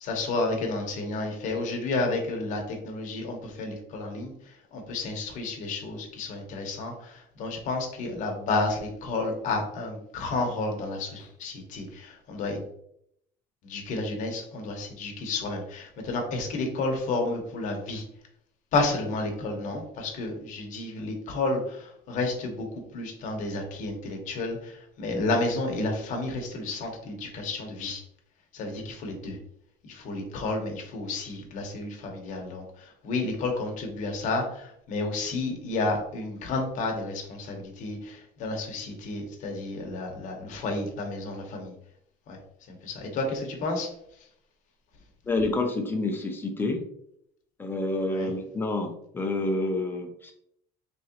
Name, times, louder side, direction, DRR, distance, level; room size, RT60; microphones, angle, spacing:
voice 1, 0.0-12.7 13.6-18.0 18.7-22.7 22.9-28.0 28.5-29.4 29.8-41.7 42.3-42.4 42.7-43.9 48.1-48.3, left 2 dB, 45° left, 2 dB, 0.9 m, -31 dB
voice 2, 45.3-46.8 47.6-50.3, left 2 dB, 10° left, 4 dB, 0.4 m, -28 dB
3.6 x 3.0 x 2.8 m, 0.71 s
cardioid pair, 165°, 18 cm